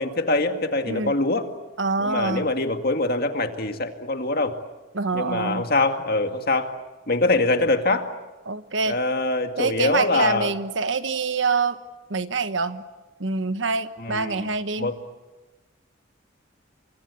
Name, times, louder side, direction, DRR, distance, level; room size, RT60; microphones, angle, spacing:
voice 1, 0.0-1.5 2.0-4.6 5.1-6.7 7.1-8.1 8.9-10.5 14.0-14.5 14.8-15.0, left 2 dB, 50° left, 6 dB, 2.1 m, -24 dB
voice 2, 1.8-2.5 4.9-5.6 8.5-9.0 9.6-11.8 12.1-12.8 13.2-14.9, right 4 dB, 65° right, 11 dB, 1.2 m, -25 dB
29.0 x 24.0 x 8.4 m, 1.2 s
head